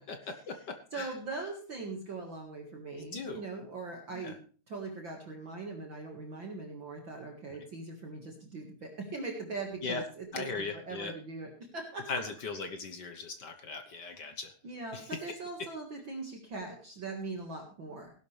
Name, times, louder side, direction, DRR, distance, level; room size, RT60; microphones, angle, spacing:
voice 1, 0.1-1.2 3.0-3.4 4.1-4.3 7.5-7.6 9.8-10.0 10.3-11.1 12.1-14.5 14.9-15.2, left 4 dB, 60° left, 7 dB, 1.1 m, -39 dB
voice 2, 0.9-4.4 4.7-10.5 10.7-12.1 14.6-18.1, right 3 dB, 45° right, 1 dB, 2.3 m, -41 dB
17.5 x 11.5 x 3.3 m, 0.41 s
omnidirectional pair, 3.3 m